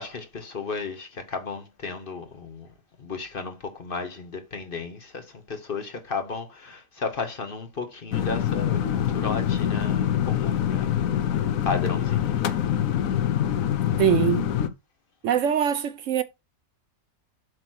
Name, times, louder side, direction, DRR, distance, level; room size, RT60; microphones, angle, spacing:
voice 1, 0.0-2.7 3.0-10.9 11.6-12.4, left 4 dB, 45° left, 1.0 m, -34 dB
sound 1, 8.1-14.7, left 10 dB, 75° left, 1.1 m, -25 dB
voice 2, 14.0-14.5 15.2-16.2, right 9 dB, 70° right, 0.9 m, -22 dB
7.7 x 3.0 x 6.1 m
omnidirectional pair, 1.5 m